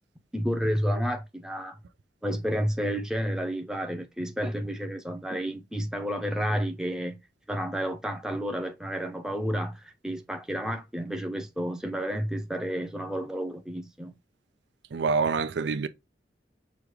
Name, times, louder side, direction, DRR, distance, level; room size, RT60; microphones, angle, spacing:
voice 1, 0.3-1.8 2.2-7.2 7.5-14.1, equal, 5° right, 0.6 m, -31 dB
voice 2, 14.9-15.9, right 5 dB, 80° right, 0.5 m, -26 dB
6.3 x 2.4 x 3.2 m
head